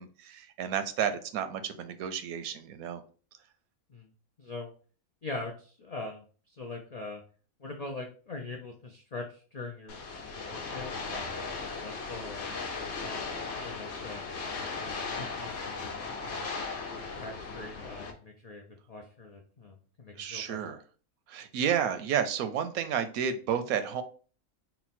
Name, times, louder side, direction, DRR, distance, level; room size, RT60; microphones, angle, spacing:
voice 1, 0.0-3.0 20.2-20.8 21.3-24.0, right 8 dB, 85° right, 10 dB, 1.0 m, -31 dB
voice 2, 4.4-4.7 5.2-7.2 7.6-12.5 13.0-14.3 14.7-16.6 17.2-20.7, left 3 dB, 75° left, 1 dB, 0.3 m, -43 dB
sound 1, 9.9-18.1, left 4 dB, 55° left, 1.0 m, -37 dB
4.0 x 2.2 x 4.1 m, 0.40 s
omnidirectional pair, 1.5 m